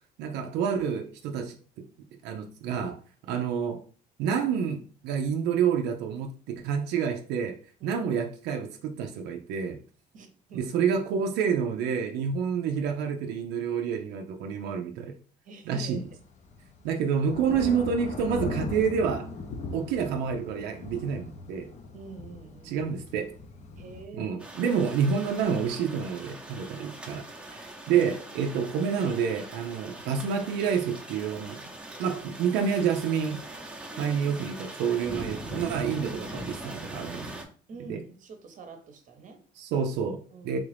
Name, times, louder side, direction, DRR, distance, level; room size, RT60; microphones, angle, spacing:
voice 1, 0.2-1.9 2.2-3.0 3.3-3.8 4.2-7.6 7.8-9.8 10.5-15.1 15.7-16.0 16.8-19.3 19.7-21.7 22.6-23.4 24.1-31.6 32.0-33.4 34.0-37.3 37.9-38.0 39.6-40.6, right 7 dB, 85° right, 3 dB, 0.4 m, -28 dB
voice 2, 10.1-10.7 15.4-16.1 21.9-22.8 23.8-24.8 33.9-34.4 37.7-39.4 40.3-40.6, right 4 dB, 50° right, 6 dB, 0.8 m, -46 dB
Thunder / Rain, 15.8-24.1, left 3 dB, 45° left, 0.5 m, -39 dB
sound 1, 24.4-37.5, right 1 dB, 5° right, 0.6 m, -41 dB
3.4 x 2.5 x 3.2 m, 0.41 s
cardioid pair, 110°, 17 cm